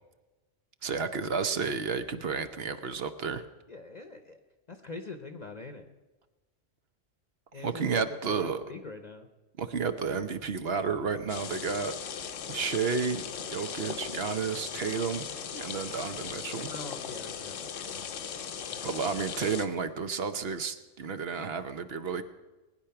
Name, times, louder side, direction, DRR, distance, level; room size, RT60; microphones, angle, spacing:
voice 1, 0.8-3.4 7.5-8.6 9.6-11.9 12.5-15.3 15.5-16.7 18.8-22.2, right 5 dB, 60° right, 10 dB, 1.0 m, -31 dB
voice 2, 3.7-4.4 4.7-5.9 7.5-9.3 16.6-18.1 18.7-18.9, left 3 dB, 40° left, 7 dB, 0.9 m, -44 dB
sound 1, 11.3-19.7, left 7 dB, 80° left, 1.2 m, -38 dB
19.5 x 9.9 x 5.8 m, 1.2 s
omnidirectional pair, 1.3 m